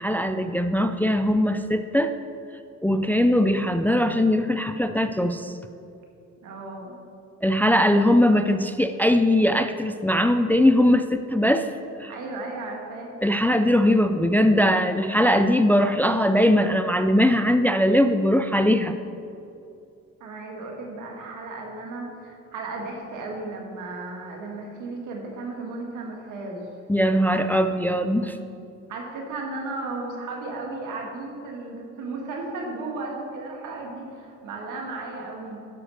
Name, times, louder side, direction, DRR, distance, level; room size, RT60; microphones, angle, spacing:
voice 1, 0.0-2.1 2.8-5.5 7.4-11.7 12.0-12.1 13.2-18.9 26.9-28.4, left 1 dB, 5° left, 8 dB, 0.4 m, -20 dB
voice 2, 6.4-6.9 12.1-13.1 20.2-26.7 28.9-35.7, right 3 dB, 85° right, 0 dB, 1.8 m, -35 dB
11.5 x 4.4 x 6.5 m, 2.6 s
cardioid pair, 90°, 30 cm